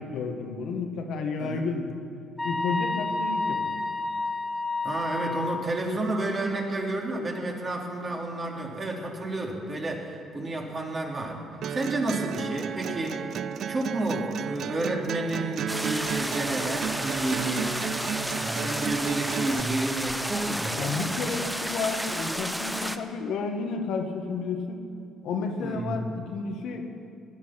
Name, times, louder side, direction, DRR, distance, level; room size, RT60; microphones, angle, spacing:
voice 1, 0.0-1.9 2.4-3.8 20.8-24.8 25.2-26.9, left 4 dB, 75° left, 4 dB, 1.4 m, -31 dB
sound 1, 2.4-5.6, left 3 dB, 15° left, 1.5 m, -30 dB
voice 2, 4.8-11.4 11.7-13.3 13.7-17.8 18.4-21.0 25.6-26.0, right 2 dB, 35° right, -1 dB, 3.0 m, -30 dB
sound 2, 11.6-19.6, right 9 dB, 65° right, 0.4 m, -33 dB
sound 3, 15.7-23.0, equal, 5° right, 0.9 m, -32 dB
17.0 x 11.0 x 5.8 m, 2.6 s
supercardioid pair, 70°, 0 cm